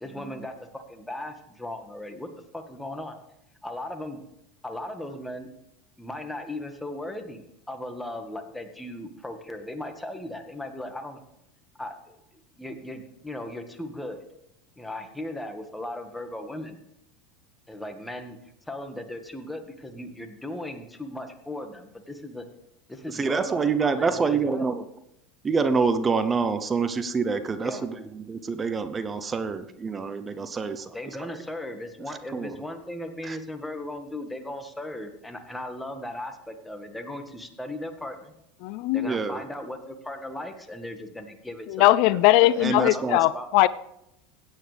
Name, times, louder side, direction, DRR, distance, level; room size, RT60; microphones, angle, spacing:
voice 1, 0.0-3.2 3.6-4.2 4.6-5.5 6.0-11.2 11.8-12.2 12.6-14.2 14.8-16.8 17.7-18.4 18.7-22.5 22.9-23.7 24.0-24.7 27.6-27.9 30.9-38.3 38.9-41.8 42.8-43.5, left 1 dB, 5° left, 6 dB, 1.8 m, -37 dB
voice 2, 23.1-24.8 25.4-31.1 32.1-32.6 33.2-33.4 39.0-39.4 42.6-43.2, right 5 dB, 25° right, 10 dB, 0.8 m, -27 dB
voice 3, 38.6-39.1 41.7-43.7, left 16 dB, 65° left, 18 dB, 0.4 m, -20 dB
16.5 x 9.2 x 3.5 m, 0.82 s
hypercardioid pair, 95°, 0 cm